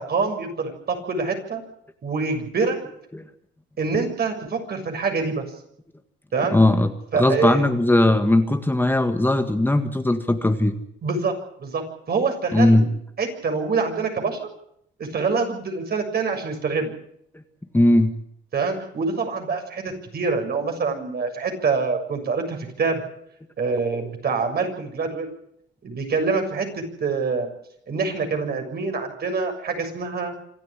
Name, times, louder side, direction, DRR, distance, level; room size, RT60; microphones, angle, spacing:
voice 1, 0.0-1.6 2.0-2.8 3.8-5.4 6.3-6.6 7.1-7.7 11.0-12.9 13.2-14.5 15.0-16.9 18.5-23.0 23.6-25.3 25.8-27.5 27.9-30.3, right 4 dB, 55° right, 5 dB, 6.9 m, -25 dB
voice 2, 6.5-6.9 7.2-10.8 12.5-12.8 17.7-18.1, left 1 dB, 10° left, 6 dB, 1.8 m, -18 dB
26.5 x 12.5 x 9.9 m, 0.73 s
cardioid pair, 90°, 20 cm